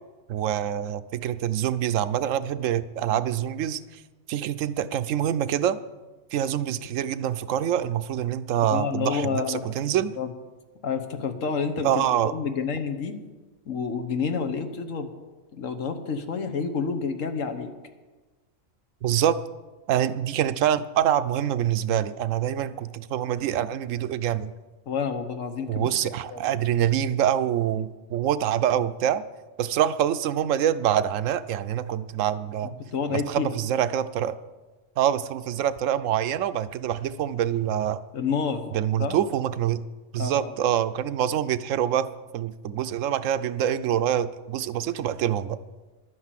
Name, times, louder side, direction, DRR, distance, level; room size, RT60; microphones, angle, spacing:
voice 1, 0.3-4.0 4.3-5.8 6.3-10.1 11.8-12.3 19.0-19.4 19.9-24.5 25.7-29.2 29.6-32.8 33.1-34.4 35.0-38.0 38.7-39.8 40.1-42.1 42.3-45.6, right 10 dB, 85° right, 13 dB, 1.0 m, -25 dB
voice 2, 8.7-9.7 9.9-10.3 10.8-13.1 13.7-15.1 15.5-17.7 24.9-25.9 26.3-26.5 32.9-33.6 38.1-38.6 39.0-39.2 40.2-40.5, left 5 dB, 85° left, 8 dB, 1.5 m, -29 dB
11.5 x 9.6 x 7.5 m, 1.3 s
omnidirectional pair, 1.3 m